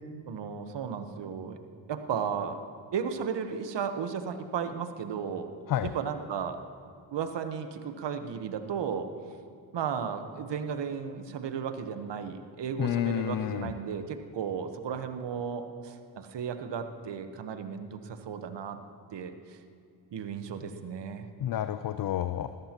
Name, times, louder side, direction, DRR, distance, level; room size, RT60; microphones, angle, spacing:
voice 1, 0.3-1.6 1.9-2.6 2.9-5.5 5.8-6.6 7.1-9.1 9.7-18.8 19.1-19.6 20.1-21.3, right 7 dB, 60° right, 8 dB, 1.2 m, -34 dB
voice 2, 12.8-13.7 21.4-22.5, left 11 dB, 45° left, 11 dB, 0.5 m, -29 dB
20.0 x 13.5 x 3.0 m, 2.3 s
supercardioid pair, 60°, 49 cm